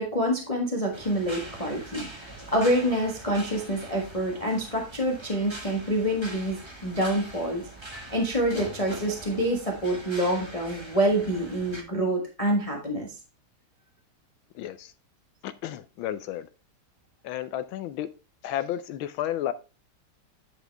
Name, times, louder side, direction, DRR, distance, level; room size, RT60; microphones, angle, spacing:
voice 1, 0.0-7.7 8.1-13.1, right 1 dB, 20° left, 1.3 m, -27 dB
sound 1, 0.9-11.8, right 2 dB, 15° right, 1.2 m, -42 dB
voice 2, 14.5-14.9 15.4-16.5 17.2-18.1 18.4-19.5, left 12 dB, 75° left, 1.3 m, -32 dB
9.9 x 5.0 x 3.4 m
omnidirectional pair, 2.4 m